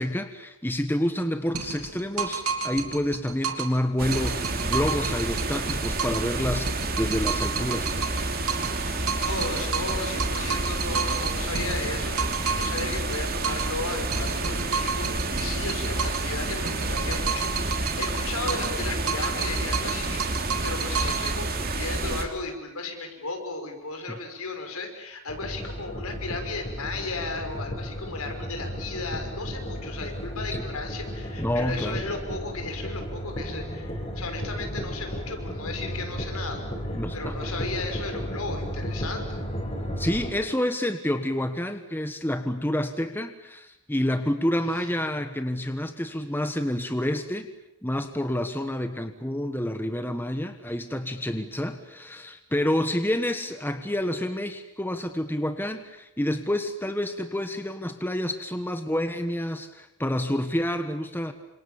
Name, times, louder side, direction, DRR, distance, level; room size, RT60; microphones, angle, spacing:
voice 1, 0.0-8.0 30.5-30.6 31.4-32.0 36.9-37.4 40.0-47.5 47.8-61.3, left 1 dB, 10° left, 8 dB, 1.3 m, -28 dB
sound 1, 1.5-3.8 4.1-6.3 6.7-8.8 9.1-13.8 14.1-16.3 16.7-18.8 19.1-21.4, right 6 dB, 85° right, 3.1 m, -31 dB
sound 2, 4.0-22.2, right 2 dB, 40° right, 3.0 m, -29 dB
voice 2, 9.2-39.4 44.8-44.9, left 3 dB, 80° left, 5 dB, 5.9 m, -35 dB
sound 3, 25.3-40.3, equal, 30° left, 5.8 m, -34 dB
29.5 x 26.5 x 7.3 m, 0.85 s
head